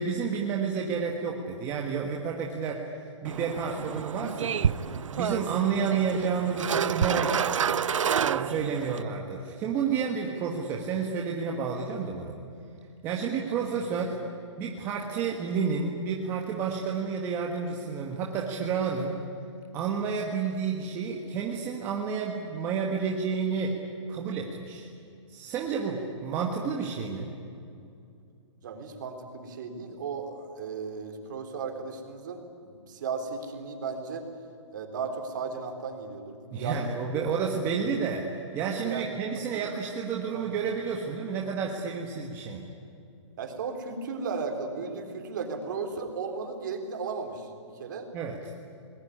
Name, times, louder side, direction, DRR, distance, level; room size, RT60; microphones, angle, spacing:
voice 1, 0.0-4.8 5.1-7.5 8.2-12.4 13.0-14.2 14.6-19.2 19.7-23.7 24.1-24.9 25.3-27.3 36.5-42.6 48.1-48.5, right 6 dB, 15° right, 0 dB, 1.4 m, -30 dB
sound 1, 3.2-9.0, right 7 dB, 85° right, 0.7 m, -29 dB
voice 2, 28.6-34.2 34.7-36.8 38.8-39.1 39.5-39.7 40.3-40.5 43.4-47.5 47.7-48.1, right 5 dB, 40° right, 5 dB, 3.6 m, -35 dB
28.5 x 20.5 x 10.0 m, 2.5 s
hypercardioid pair, 175°, 16 cm